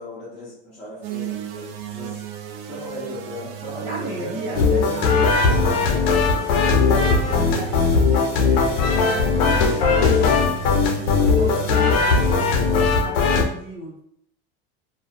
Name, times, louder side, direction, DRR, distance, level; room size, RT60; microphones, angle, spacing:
voice 1, 0.0-2.2 2.7-4.4 8.8-9.7, left 1 dB, 5° left, -11 dB, 0.5 m, -37 dB
sound 1, 1.0-13.0, right 10 dB, 75° right, 0.5 m, -33 dB
voice 2, 3.8-7.9 8.3-10.5 11.0-14.0, right 1 dB, 15° right, -14 dB, 0.9 m, -35 dB
sound 2, 4.5-13.4, left 5 dB, 90° left, 0.6 m, -19 dB
2.4 x 2.1 x 2.7 m, 0.68 s
supercardioid pair, 160°, 30 cm